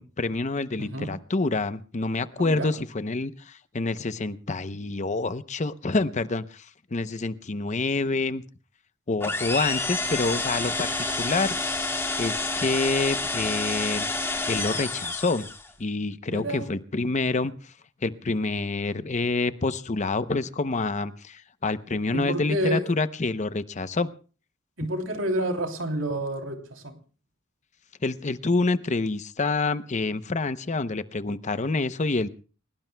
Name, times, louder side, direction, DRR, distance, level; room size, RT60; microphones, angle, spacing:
voice 1, 0.0-6.7 6.9-8.4 9.1-11.5 12.2-14.1 14.5-15.5 15.8-17.5 18.0-24.1 28.0-32.3, left 3 dB, 35° left, 13 dB, 0.7 m, -27 dB
voice 2, 0.8-1.1 2.4-2.7 16.3-16.7 22.1-22.9 24.8-26.9, right 1 dB, 75° right, 4 dB, 3.0 m, -29 dB
sound 1, 9.2-15.7, left 2 dB, 15° left, 1.7 m, -29 dB
29.5 x 18.0 x 2.2 m, 0.37 s
head